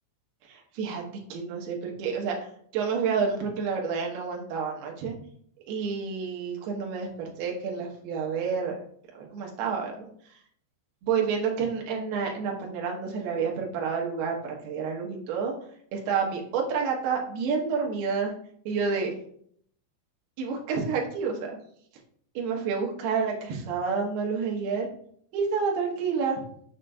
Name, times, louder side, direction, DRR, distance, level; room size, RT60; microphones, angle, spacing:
voice 1, 0.5-1.0 1.3-2.5 2.7-5.1 5.7-8.8 9.1-10.1 11.0-15.5 15.9-18.3 18.7-19.1 20.4-21.5 22.3-24.9 25.3-26.4, right 5 dB, 70° right, 0 dB, 2.7 m, -29 dB
7.6 x 5.8 x 2.3 m, 0.63 s
omnidirectional pair, 5.5 m